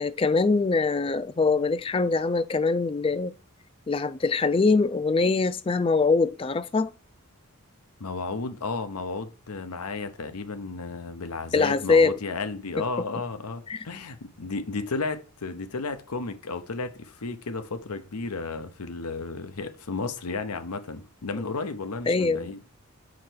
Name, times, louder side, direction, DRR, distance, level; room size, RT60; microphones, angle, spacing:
voice 1, 0.0-3.3 3.9-6.9 11.5-12.2 12.8-12.9 13.7-13.8 22.1-22.5, left 4 dB, 25° left, 0.3 m, -23 dB
voice 2, 8.0-22.6, left 3 dB, 90° left, 0.8 m, -33 dB
4.9 x 4.6 x 5.9 m
head